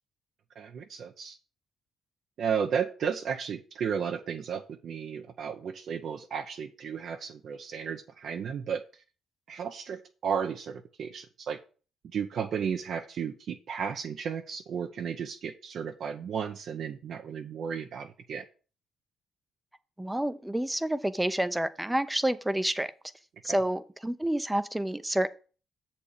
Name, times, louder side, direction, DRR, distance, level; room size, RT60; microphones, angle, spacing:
voice 1, 0.6-1.4 2.4-8.8 9.5-11.6 12.1-18.4 23.5-23.6, right 7 dB, 65° right, 4 dB, 0.7 m, -34 dB
voice 2, 20.0-22.9 23.4-25.3, right 1 dB, 5° right, 13 dB, 0.6 m, -29 dB
7.2 x 4.3 x 6.6 m, 0.36 s
cardioid pair, 90°, 0 cm